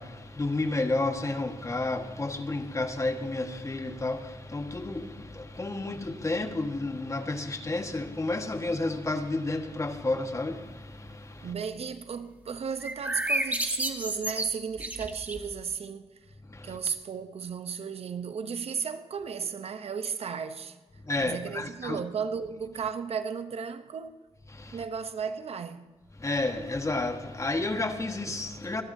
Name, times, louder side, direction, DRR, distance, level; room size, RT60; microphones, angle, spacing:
voice 1, 0.0-11.5 16.5-16.8 21.0-22.0 24.5-24.8 26.2-28.8, left 2 dB, 25° left, 1.5 m, -31 dB
voice 2, 11.4-16.1 16.6-20.8 21.2-24.2 24.7-25.9, right 6 dB, 60° right, 0.8 m, -34 dB
sound 1, 12.8-15.5, right 1 dB, 15° right, 1.5 m, -31 dB
25.5 x 12.0 x 2.7 m
cardioid pair, 65°, 12 cm